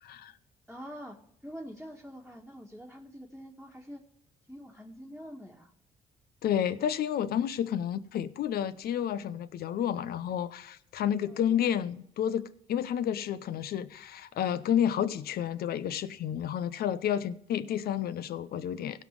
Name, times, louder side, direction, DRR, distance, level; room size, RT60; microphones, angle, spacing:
voice 1, 0.0-0.3 6.4-19.0, left 9 dB, 70° left, 0.6 m, -30 dB
voice 2, 0.7-1.2 1.4-4.0 4.5-5.7 7.6-7.8 11.3-11.4, equal, ahead, 1.6 m, -45 dB
16.0 x 5.4 x 5.1 m
supercardioid pair, 55°, 17 cm